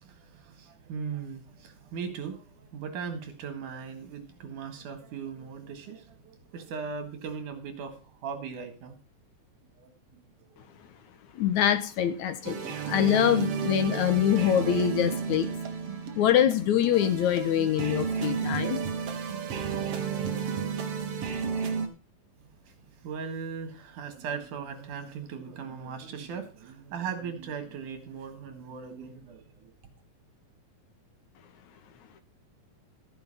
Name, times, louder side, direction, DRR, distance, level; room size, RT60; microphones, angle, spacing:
voice 1, 0.0-8.0 8.2-9.0 9.8-10.2 10.5-10.6 22.7-22.8 23.0-29.7, right 6 dB, 80° right, 3.3 m, -38 dB
voice 2, 11.3-15.5 16.2-18.8, left 10 dB, 70° left, 2.3 m, -24 dB
sound 1, 12.4-21.9, right 6 dB, 55° right, 2.2 m, -32 dB
13.0 x 7.1 x 5.6 m
omnidirectional pair, 3.6 m